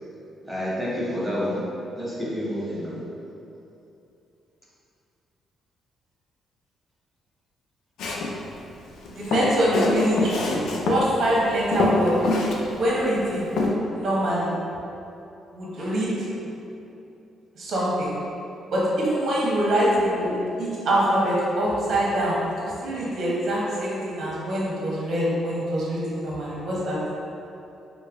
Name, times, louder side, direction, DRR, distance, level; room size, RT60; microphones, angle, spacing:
voice 1, 0.5-1.6 2.0-3.0, equal, 5° right, -7 dB, 0.7 m, -28 dB
Walk footsteps, 8.0-8.3 9.0-11.0 11.4-11.5 11.7-12.6 12.9-13.0 13.6-13.7, left 2 dB, 80° left, 0.4 m, -24 dB
voice 2, 9.1-13.5 13.9-14.5 15.5-16.1 17.6-18.1 18.7-27.0, equal, 60° right, -6 dB, 0.8 m, -24 dB
3.1 x 2.1 x 3.3 m, 2.8 s
cardioid pair, 105°, 0 cm